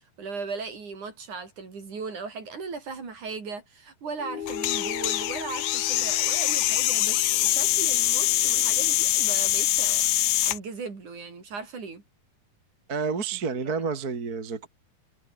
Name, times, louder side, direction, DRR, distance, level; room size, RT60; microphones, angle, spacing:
voice 1, 0.2-10.0 10.4-12.0 13.7-13.8, right 4 dB, 50° right, 6.3 m, -37 dB
sound 1, 4.2-9.0, left 8 dB, 55° left, 3.4 m, -39 dB
sound 2, 4.5-10.6, left 14 dB, 70° left, 2.7 m, -24 dB
voice 2, 12.9-14.7, right 5 dB, 30° right, 2.2 m, -29 dB
omnidirectional pair, 4.4 m